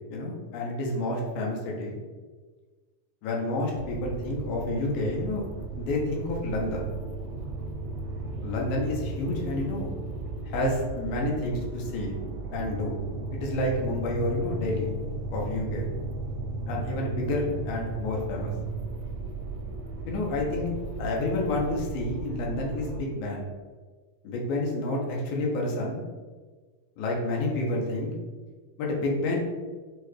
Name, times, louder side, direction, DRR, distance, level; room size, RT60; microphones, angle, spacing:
voice 1, 0.1-2.0 3.2-5.4 5.8-6.9 8.4-9.9 10.5-12.2 12.5-13.0 13.3-14.9 15.3-15.9 16.7-18.5 20.1-20.7 21.0-23.5 24.2-26.0 27.0-28.1 28.8-29.4, left 2 dB, 90° left, -1 dB, 2.5 m, -29 dB
sound 1, 3.7-23.0, right 3 dB, 85° right, 2.2 m, -35 dB
6.5 x 2.2 x 3.1 m, 1.4 s
omnidirectional pair, 3.9 m